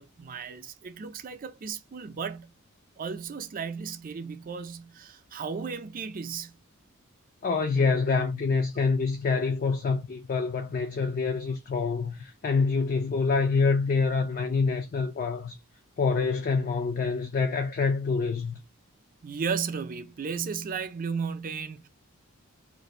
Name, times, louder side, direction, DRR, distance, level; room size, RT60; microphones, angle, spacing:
voice 1, 0.0-2.5 3.0-6.5 19.2-21.9, right 6 dB, 40° right, 0.4 m, -34 dB
voice 2, 7.4-15.6 16.0-18.6, left 4 dB, 40° left, 0.4 m, -26 dB
2.6 x 2.5 x 4.1 m
head